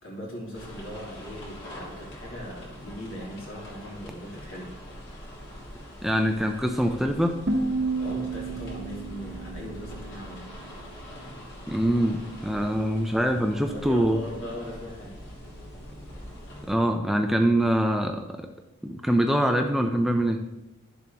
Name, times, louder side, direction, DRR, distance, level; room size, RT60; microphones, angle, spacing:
voice 1, 0.0-4.7 8.0-10.4 13.7-15.1, equal, 70° left, -5 dB, 3.2 m, -39 dB
sound 1, 0.5-16.7, equal, 55° left, 2.7 m, -43 dB
voice 2, 6.0-7.4 11.7-14.2 16.7-18.5 18.8-20.4, equal, ahead, 4 dB, 0.4 m, -24 dB
sound 2, 7.5-10.5, right 3 dB, 50° right, 0.9 m, -31 dB
12.0 x 7.1 x 2.9 m, 0.96 s
head